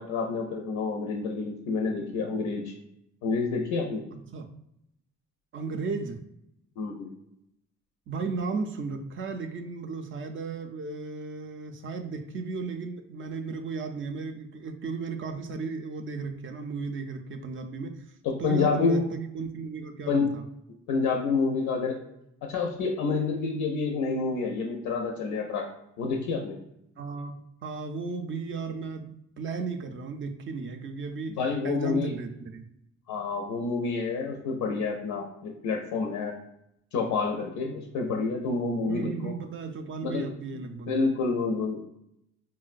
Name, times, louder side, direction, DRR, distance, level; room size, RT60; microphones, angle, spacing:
voice 1, 0.0-2.7 3.2-4.0 6.8-7.1 18.2-19.1 20.1-20.3 20.9-22.0 22.4-25.7 26.0-26.6 31.3-32.1 33.1-36.3 36.9-39.3 40.0-40.3 40.9-41.8, left 4 dB, 90° left, 1 dB, 0.5 m, -28 dB
voice 2, 4.1-4.5 5.5-6.2 8.1-18.0 18.4-20.4 27.0-31.4 31.6-32.6 38.9-41.0, right 4 dB, 45° right, 5 dB, 0.4 m, -35 dB
3.8 x 2.1 x 2.4 m, 0.80 s
cardioid pair, 90°, 30 cm